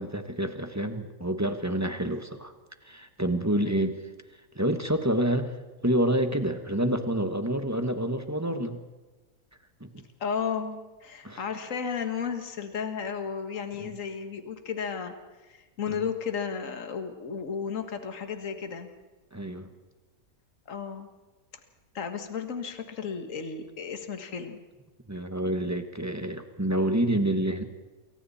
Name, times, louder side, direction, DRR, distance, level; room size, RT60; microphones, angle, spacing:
voice 1, 0.0-2.5 2.8-4.0 4.5-5.6 5.8-8.8 9.8-10.0 11.2-11.4 13.8-13.9 15.9-16.0 19.3-19.7 25.1-27.6, right 1 dB, 10° right, 7 dB, 1.4 m, -28 dB
voice 2, 10.2-15.2 15.5-18.9 20.7-21.1 21.9-24.6, left 6 dB, 60° left, 7 dB, 2.0 m, -33 dB
28.0 x 23.0 x 4.3 m, 1.2 s
omnidirectional pair, 1.6 m